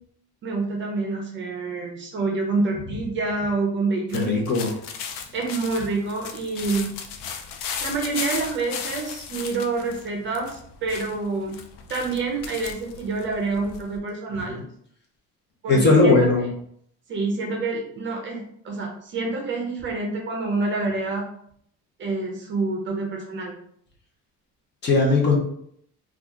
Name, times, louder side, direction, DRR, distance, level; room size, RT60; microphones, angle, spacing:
voice 1, 0.4-4.4 5.3-7.0 7.8-11.6 11.9-14.6 15.6-16.3 17.1-21.2 22.0-23.6, right 3 dB, 35° right, 0 dB, 0.5 m, -27 dB
sound 1, 4.1-14.0, left 7 dB, 80° left, 0.5 m, -36 dB
voice 2, 4.1-4.7 14.5-14.6 15.7-16.5 24.8-25.4, left 3 dB, 30° left, -1 dB, 0.7 m, -18 dB
2.8 x 2.4 x 3.5 m, 0.68 s
cardioid pair, 170°, 34 cm